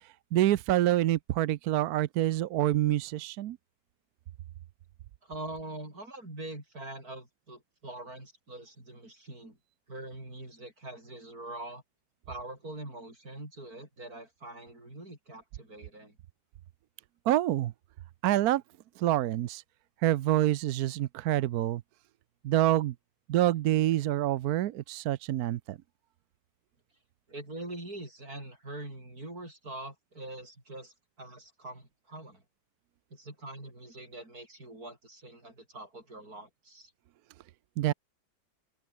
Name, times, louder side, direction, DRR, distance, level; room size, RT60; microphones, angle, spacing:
voice 1, 0.3-3.6 17.3-17.7 18.2-18.6 19.0-19.6 20.0-21.8 22.4-22.9 23.3-25.8 37.8-37.9, right 14 dB, 70° right, 0.9 m, -26 dB
voice 2, 5.2-9.6 9.9-11.8 12.3-16.2 27.3-32.4 33.1-36.9, right 2 dB, 50° right, 8.7 m, -43 dB
open air
omnidirectional pair, 2.1 m